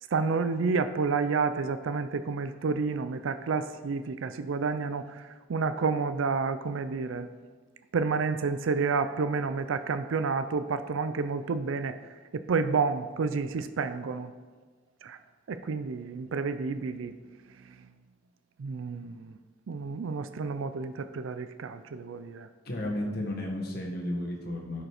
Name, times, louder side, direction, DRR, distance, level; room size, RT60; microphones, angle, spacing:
voice 1, 0.1-5.2 5.5-7.3 7.9-12.0 12.3-14.3 15.0-15.2 15.5-17.1 18.6-19.3 19.7-22.5, right 4 dB, 75° right, 11 dB, 0.4 m, -30 dB
voice 2, 22.6-24.8, left 1 dB, 50° left, 0 dB, 1.6 m, -33 dB
11.5 x 5.1 x 4.9 m, 1.4 s
head